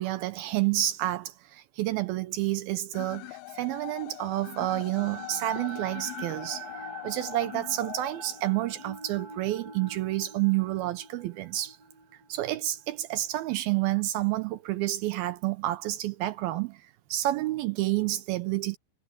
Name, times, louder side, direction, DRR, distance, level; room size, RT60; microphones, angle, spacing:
voice 1, 0.0-11.8 12.3-16.8 17.1-18.8, right 16 dB, 80° right, 2.3 m, -29 dB
sound 1, 2.9-8.9, left 24 dB, 80° left, 2.3 m, -42 dB
sound 2, 4.4-14.6, right 3 dB, 55° right, 4.1 m, -45 dB
omnidirectional pair, 4.8 m